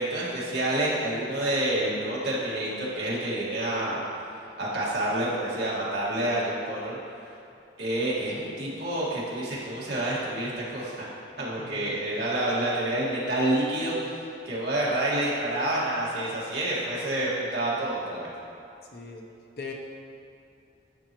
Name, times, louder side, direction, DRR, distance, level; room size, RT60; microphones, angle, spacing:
voice 1, 0.0-4.0 4.6-7.0 7.8-11.1 11.4-18.3, right 1 dB, 60° right, -7 dB, 1.8 m, -28 dB
voice 2, 11.6-12.0 18.9-19.2 19.6-19.7, left 4 dB, 55° left, 0 dB, 0.8 m, -39 dB
11.0 x 5.5 x 3.0 m, 2.6 s
head